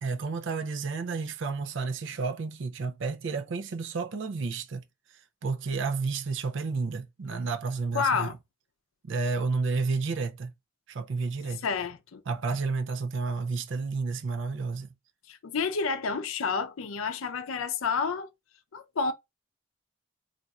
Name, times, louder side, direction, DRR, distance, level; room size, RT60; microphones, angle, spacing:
voice 1, 0.0-4.8 5.4-8.4 9.0-10.5 10.9-11.7 12.3-14.9, right 4 dB, 65° right, 0.4 m, -31 dB
voice 2, 7.9-8.3 11.6-12.2 15.3-18.3 18.7-19.1, left 5 dB, 80° left, 0.5 m, -29 dB
4.1 x 2.5 x 2.3 m
head